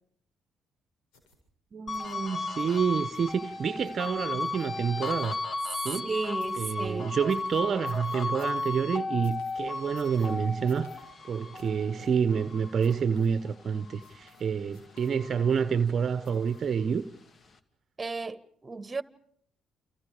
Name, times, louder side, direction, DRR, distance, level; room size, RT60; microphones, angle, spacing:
sound 1, 1.1-1.4 1.9-2.2 2.6-2.8 3.1-3.4 3.8-4.1 4.4-4.7 5.0-5.6 6.4-6.7 7.3-8.7 9.2-9.5 10.0-10.3 10.7-11.0 11.5-11.7 12.0-12.1 12.8-13.3 14.0-14.4 14.7-15.4 16.2-16.7 17.1-17.2, left 4 dB, 80° left, 7.5 m, -59 dB
voice 1, 1.7-5.4 5.8-6.1 6.6-17.1, right 6 dB, 50° right, 1.0 m, -28 dB
sound 2, 1.9-14.5 14.9-16.6, left 3 dB, 45° left, 2.4 m, -35 dB
voice 2, 6.0-7.1 18.0-19.0, right 3 dB, 25° right, 1.7 m, -34 dB
30.0 x 29.0 x 5.1 m
hypercardioid pair, 55°, 0 cm